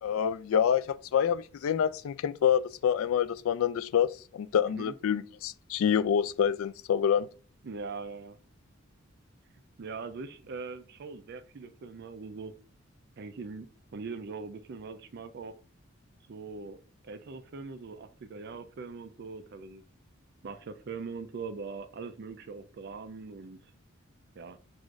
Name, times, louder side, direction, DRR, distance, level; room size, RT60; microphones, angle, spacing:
voice 1, 0.0-7.3, left 8 dB, 85° left, 0.3 m, -27 dB
voice 2, 7.6-8.4 9.8-12.5 13.2-13.7 13.9-15.5 16.3-16.8 17.0-19.8 20.4-23.6 24.4-24.6, right 4 dB, 55° right, 0.4 m, -41 dB
6.2 x 2.5 x 2.4 m
head